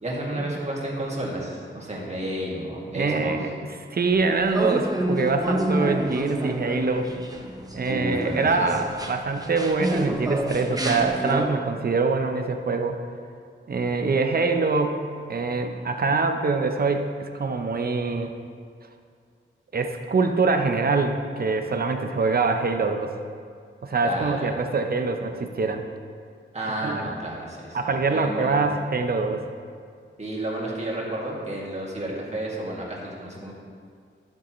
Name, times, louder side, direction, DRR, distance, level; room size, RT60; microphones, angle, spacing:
voice 1, 0.0-3.3 7.8-8.4 24.0-24.5 26.5-27.8 28.1-28.6 30.2-33.5, right 1 dB, 35° right, -4 dB, 2.0 m, -31 dB
voice 2, 2.9-3.5 3.9-7.1 7.7-13.0 13.7-18.3 19.7-23.1 23.8-25.8 26.8-27.1 27.7-29.4, right 4 dB, 50° right, 5 dB, 0.8 m, -24 dB
sound 1, 4.5-11.5, right 1 dB, 20° right, 0.8 m, -28 dB
11.0 x 8.4 x 3.1 m, 2.2 s
wide cardioid pair, 95°, 20 cm